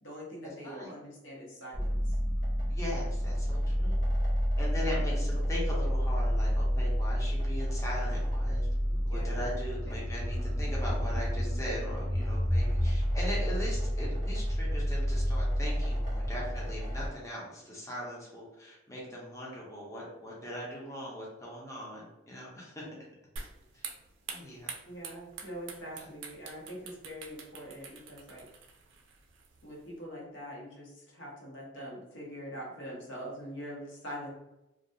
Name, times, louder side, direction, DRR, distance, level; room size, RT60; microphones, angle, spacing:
voice 1, 0.0-2.2 4.7-5.4 8.9-10.1 24.8-28.4 29.6-34.3, equal, 70° left, -4 dB, 0.9 m, -44 dB
sound 1, 1.7-17.1, equal, 50° left, 1.1 m, -29 dB
voice 2, 2.7-4.0 4.6-8.7 9.0-22.8 23.7-23.8 24.3-24.7 25.9-26.0, equal, 15° left, -4 dB, 0.5 m, -40 dB
sound 2, 23.4-29.9, right 5 dB, 75° right, 0.4 m, -46 dB
2.3 x 2.2 x 2.6 m, 0.95 s
head